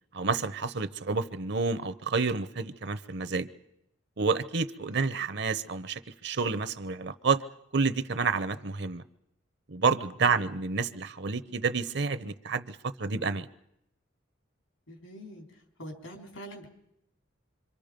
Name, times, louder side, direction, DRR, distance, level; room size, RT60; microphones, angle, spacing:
voice 1, 0.1-3.5 4.2-7.4 7.7-9.0 9.7-13.5, right 4 dB, 55° right, 14 dB, 0.8 m, -29 dB
voice 2, 14.9-15.5 15.8-16.7, equal, 90° left, 2 dB, 4.0 m, -44 dB
26.5 x 25.0 x 5.2 m, 0.81 s
head